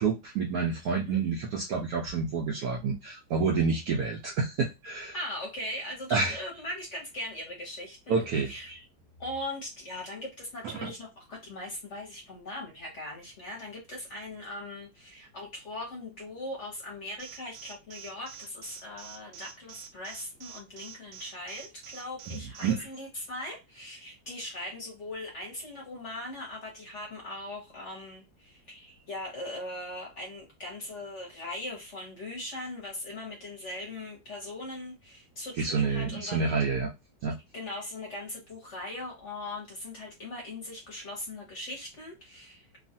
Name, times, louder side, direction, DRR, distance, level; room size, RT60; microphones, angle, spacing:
voice 1, 0.0-5.1 6.1-6.4 8.1-8.8 10.8-10.9 22.3-22.9 35.6-36.9 37.2-37.4, right 5 dB, 70° right, 0 dB, 0.9 m, -29 dB
voice 2, 5.1-8.7 9.2-36.5 37.5-42.7, left 1 dB, 50° left, 0 dB, 1.1 m, -40 dB
Alarm, 17.2-22.7, right 8 dB, 85° right, 1.4 m, -46 dB
3.1 x 2.3 x 2.7 m, 0.22 s
omnidirectional pair, 2.0 m